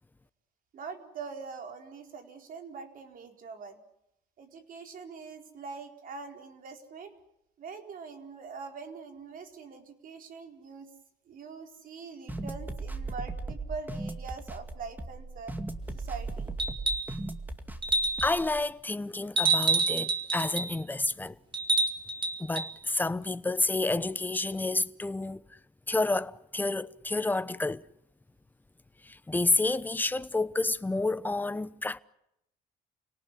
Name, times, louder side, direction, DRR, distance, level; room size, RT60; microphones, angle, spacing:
voice 1, 0.7-3.8 4.4-7.1 7.6-10.9 11.3-15.6 15.9-16.6, right 5 dB, 55° right, 4.3 m, -43 dB
sound 1, 12.3-18.6, right 3 dB, 10° right, 2.2 m, -37 dB
sound 2, 16.6-17.2 17.8-18.4 19.4-20.7 21.5-22.7 24.4-24.5, right 3 dB, 30° right, 2.9 m, -28 dB
voice 2, 18.2-21.4 22.4-25.6 25.9-27.9 29.0-32.0, left 2 dB, 10° left, 0.9 m, -29 dB
29.5 x 18.5 x 9.9 m
cardioid pair, 110°, 17 cm